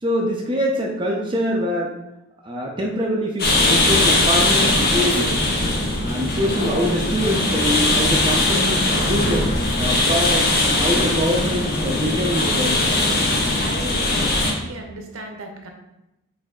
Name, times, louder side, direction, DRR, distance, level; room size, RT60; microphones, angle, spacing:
voice 1, 0.0-1.9 2.4-5.4 6.0-9.4 9.8-13.0, equal, 20° right, -1 dB, 0.4 m, -24 dB
sound 1, 3.4-14.5, left 2 dB, 45° left, 0.8 m, -20 dB
voice 2, 13.6-15.7, right 2 dB, 70° right, 3 dB, 0.7 m, -35 dB
6.3 x 3.2 x 2.3 m, 0.89 s
head